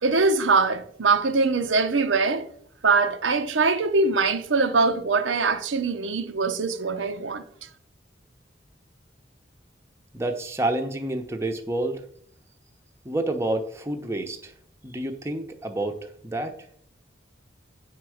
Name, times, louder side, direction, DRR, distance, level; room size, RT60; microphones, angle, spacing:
voice 1, 0.0-2.4 2.8-7.4, right 4 dB, 90° right, 0.8 m, -22 dB
voice 2, 10.1-12.0 13.0-14.5 14.8-16.0 16.2-16.5, right 1 dB, 15° right, 0.8 m, -28 dB
9.4 x 4.6 x 6.3 m
head